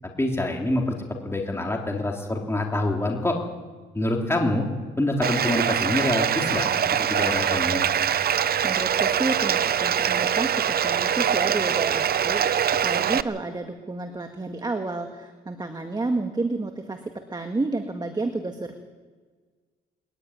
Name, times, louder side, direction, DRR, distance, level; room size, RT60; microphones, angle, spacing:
voice 1, 0.2-0.9 1.2-3.4 3.9-4.7 5.0-7.9, left 1 dB, 10° left, 1 dB, 3.6 m, -26 dB
Bathtub (filling or washing), 5.2-13.2, right 8 dB, 50° right, 0.8 m, -23 dB
voice 2, 8.6-18.7, right 2 dB, 20° right, 5 dB, 1.9 m, -30 dB
21.5 x 14.5 x 9.7 m, 1.5 s
cardioid pair, 90°, 20 cm